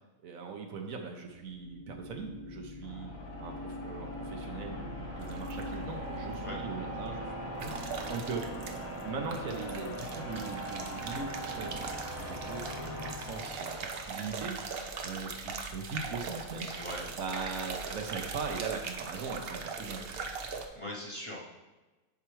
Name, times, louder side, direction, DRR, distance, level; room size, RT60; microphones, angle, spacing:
voice 1, 0.2-3.1 3.4-8.4 9.0-14.6 15.0-16.7 17.2-20.1, right 4 dB, 75° right, 3 dB, 1.3 m, -40 dB
sound 1, 1.2-14.4, equal, 50° left, 1.8 m, -40 dB
sound 2, 5.2-5.8 7.6-9.0 9.3-20.6, right 5 dB, 55° right, 0.8 m, -40 dB
voice 2, 16.6-17.2 20.7-21.4, left 1 dB, 25° left, -4 dB, 0.9 m, -40 dB
10.5 x 4.5 x 3.2 m, 1.2 s
omnidirectional pair, 1.4 m